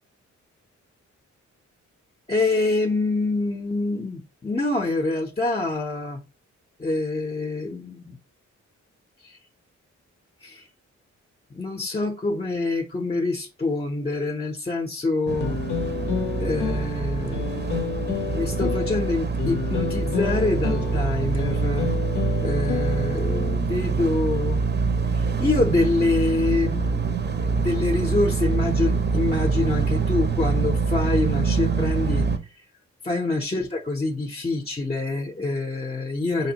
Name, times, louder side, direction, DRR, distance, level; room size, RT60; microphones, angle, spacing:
voice 1, 2.3-6.2 6.8-8.2 9.2-9.4 10.4-10.7 11.5-15.6 16.4-17.6 18.3-21.9 22.4-24.6 25.1-27.1 27.4-32.3 33.0-36.5, left 2 dB, 20° left, 0.6 m, -26 dB
sound 1, 15.3-32.4, right 5 dB, 35° right, 0.6 m, -25 dB
sound 2, 15.4-23.5, left 7 dB, 75° left, 0.6 m, -30 dB
5.1 x 2.0 x 2.8 m
cardioid pair, 65°, 30 cm